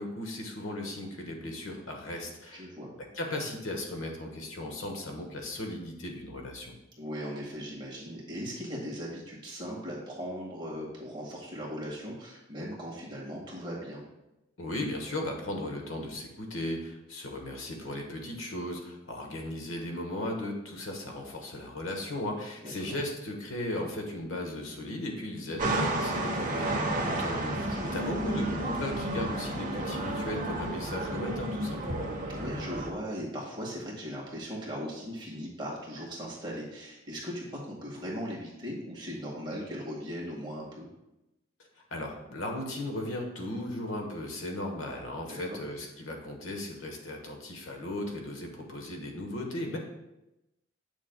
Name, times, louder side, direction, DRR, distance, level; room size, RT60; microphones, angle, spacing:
voice 1, 0.0-2.7 3.1-6.7 14.6-32.1 41.9-49.8, left 1 dB, 80° left, 2 dB, 1.2 m, -36 dB
voice 2, 2.5-3.0 7.0-14.0 22.6-23.0 27.7-28.1 32.3-40.9 45.3-45.6, equal, 25° right, -4 dB, 1.7 m, -38 dB
sound 1, 25.6-32.9, right 1 dB, 40° right, 0.9 m, -31 dB
8.2 x 6.3 x 2.2 m, 0.93 s
head